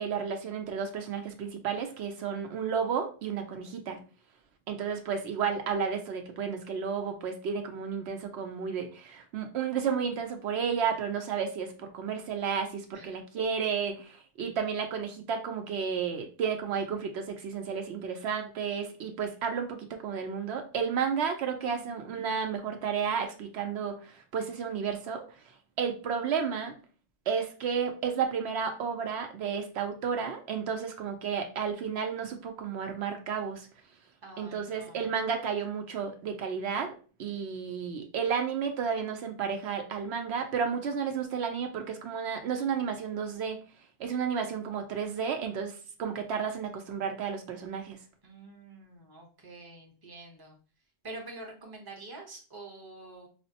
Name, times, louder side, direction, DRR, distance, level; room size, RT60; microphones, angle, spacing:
voice 1, 0.0-4.0 4.7-19.8 20.0-25.2 25.8-26.7 27.3-33.7 34.4-36.9 37.2-43.6 44.0-48.0, right 6 dB, 80° right, 5 dB, 0.8 m, -32 dB
voice 2, 21.5-22.0 34.2-35.1 48.2-50.6 51.0-53.3, right 2 dB, 25° right, 1 dB, 0.8 m, -47 dB
5.0 x 2.1 x 2.7 m, 0.37 s
omnidirectional pair, 1.1 m